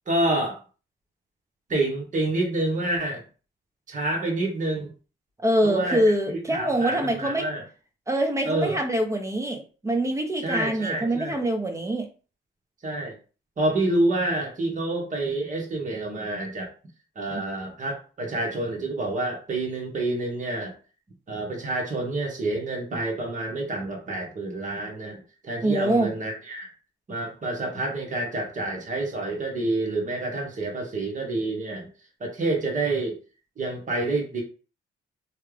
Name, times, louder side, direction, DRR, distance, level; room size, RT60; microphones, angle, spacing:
voice 1, 0.1-0.6 1.7-3.2 3.9-4.9 5.6-6.1 6.5-7.6 8.4-8.8 10.4-11.4 12.8-13.2 13.6-16.7 17.1-20.8 21.3-26.7 27.1-31.9 32.2-33.2 33.6-34.4, right 2 dB, 40° right, 1 dB, 1.4 m, -28 dB
voice 2, 5.4-7.5 8.1-12.1 17.3-17.4 25.6-26.1, right 1 dB, 15° right, 3 dB, 0.9 m, -24 dB
3.2 x 2.3 x 3.4 m, 0.36 s
cardioid pair, 90°, 20 cm